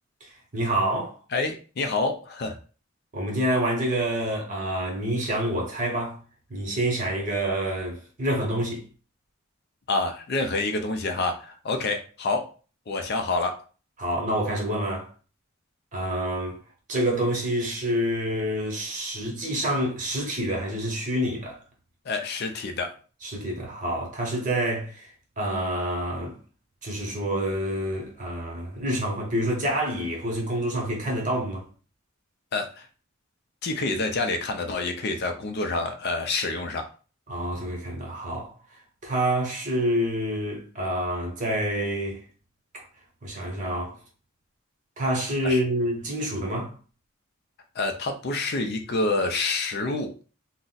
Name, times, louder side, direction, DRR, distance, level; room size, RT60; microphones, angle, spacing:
voice 1, 0.5-1.2 3.1-6.2 6.5-8.8 14.0-15.1 15.9-16.6 16.9-21.6 23.2-25.1 25.4-26.4 26.8-31.6 37.3-38.5 39.0-42.2 43.2-44.0 45.0-46.7, right 1 dB, 35° right, 0.9 m, -27 dB
voice 2, 1.3-2.6 9.9-12.5 12.9-13.6 22.1-22.9 32.5-32.9 33.6-36.9 45.4-45.6 47.8-50.1, left 3 dB, 50° left, 0.4 m, -27 dB
2.4 x 2.0 x 3.9 m
head